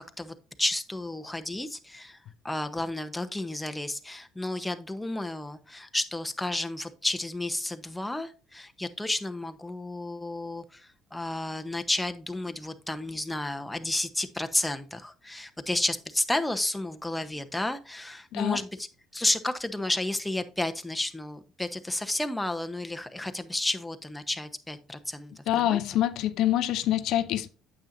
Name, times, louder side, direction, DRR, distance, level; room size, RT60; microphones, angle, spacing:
voice 1, 0.0-2.2 2.4-18.9 19.1-25.8, left 1 dB, 10° left, 1.0 m, -32 dB
voice 2, 25.5-27.5, left 13 dB, 70° left, 0.5 m, -26 dB
9.0 x 7.4 x 2.6 m
hypercardioid pair, 65°, 0 cm